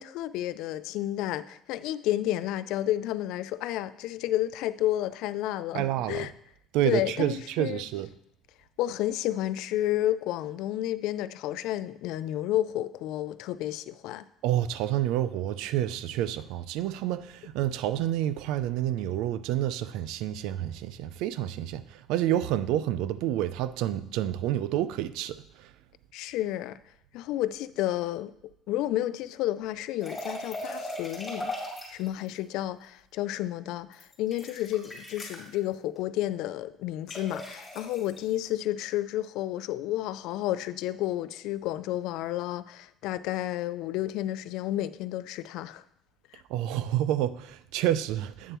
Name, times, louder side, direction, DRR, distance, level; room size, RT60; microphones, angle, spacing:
voice 1, 0.0-6.3 6.8-7.8 8.8-14.2 26.1-26.8 27.1-28.3 28.7-31.5 31.9-45.8 46.3-46.4, left 14 dB, 70° left, 0.3 m, -31 dB
voice 2, 5.7-6.3 6.7-8.1 14.4-25.7 46.5-48.6, right 12 dB, 80° right, 0.4 m, -29 dB
sound 1, 30.0-32.1 33.9-35.5 37.1-38.2, left 1 dB, 10° left, 2.7 m, -38 dB
8.5 x 6.7 x 3.0 m
cardioid pair, 155°, 0 cm